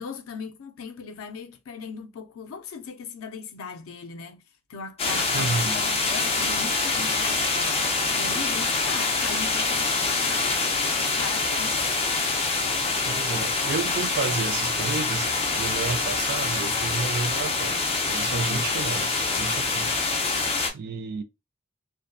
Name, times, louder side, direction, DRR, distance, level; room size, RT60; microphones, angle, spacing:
voice 1, 0.0-4.4 4.7-7.7 8.2-10.5 10.9-11.9 18.3-18.7, left 5 dB, 85° left, 0.4 m, -38 dB
sound 1, 5.0-20.7, left 3 dB, 30° left, 0.5 m, -25 dB
voice 2, 5.3-5.8 13.0-15.3 15.6-20.0 20.7-21.2, right 4 dB, 50° right, 0.3 m, -31 dB
2.6 x 2.2 x 2.3 m
head